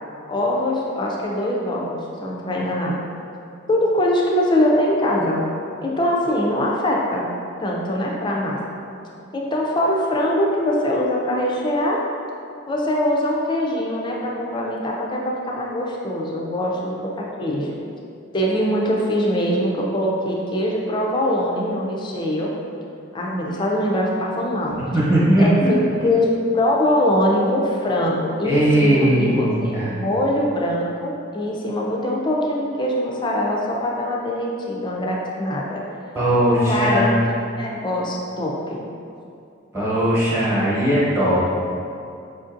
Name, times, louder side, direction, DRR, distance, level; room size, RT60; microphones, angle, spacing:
voice 1, 0.3-3.0 3.7-5.4 5.8-7.3 7.6-8.6 9.3-12.0 12.7-17.8 18.3-22.5 23.1-24.7 25.4-35.8 36.7-38.8, left 1 dB, 25° left, -2 dB, 0.4 m, -22 dB
voice 2, 24.8-25.7 28.4-29.9 36.1-37.2 39.7-41.4, right 1 dB, 15° right, -10 dB, 1.0 m, -18 dB
4.9 x 2.6 x 2.5 m, 2.5 s
head